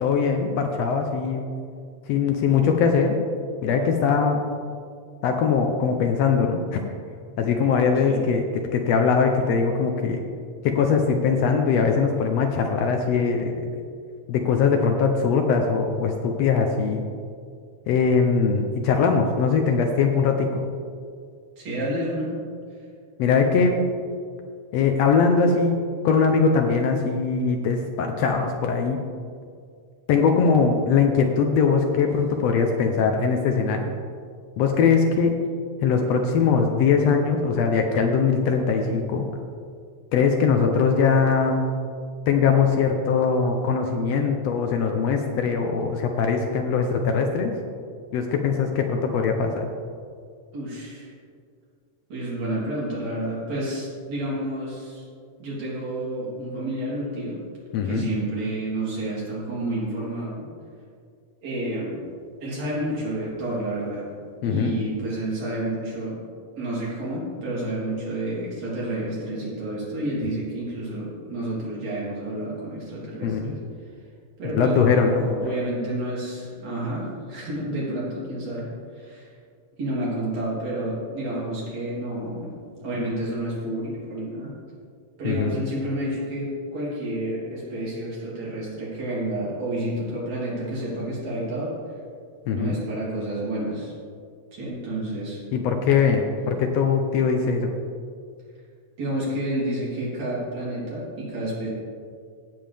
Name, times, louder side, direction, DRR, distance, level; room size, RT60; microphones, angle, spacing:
voice 1, 0.0-1.4 2.1-3.2 3.6-4.4 5.2-6.8 7.4-10.3 10.6-13.6 14.3-17.0 17.9-20.6 23.2-23.8 24.7-29.0 30.1-33.9 34.6-35.3 35.8-39.3 40.1-41.7 42.3-47.5 48.1-49.7 57.7-58.1 64.4-64.7 73.2-73.5 74.5-75.2 85.2-85.6 92.5-92.8 95.5-97.7, left 5 dB, 70° left, 4 dB, 1.7 m, -21 dB
voice 2, 21.6-22.3 50.5-51.1 52.1-55.0 55.4-57.4 57.8-60.5 61.4-62.0 62.4-64.0 64.4-66.2 66.6-73.6 74.4-78.7 78.9-79.3 79.8-82.5 82.8-84.5 85.2-91.7 92.5-93.9 94.5-95.4 99.0-101.7, right 1 dB, 65° right, -7 dB, 4.4 m, -30 dB
16.5 x 7.4 x 3.4 m, 2.2 s
omnidirectional pair, 3.3 m